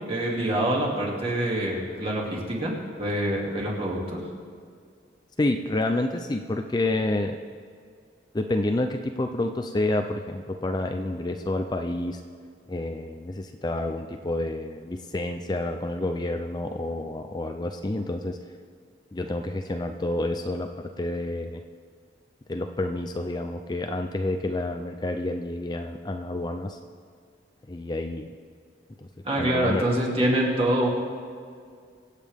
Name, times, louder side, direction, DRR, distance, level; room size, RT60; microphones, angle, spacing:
voice 1, 0.0-4.2 29.2-30.9, right 1 dB, 35° right, -3 dB, 2.5 m, -25 dB
voice 2, 5.4-7.4 8.3-12.2 12.7-18.4 19.1-21.6 22.5-26.8 27.7-28.3 29.0-29.1 29.4-29.9, left 2 dB, 25° left, 5 dB, 0.5 m, -29 dB
24.0 x 8.3 x 3.5 m, 2.1 s
head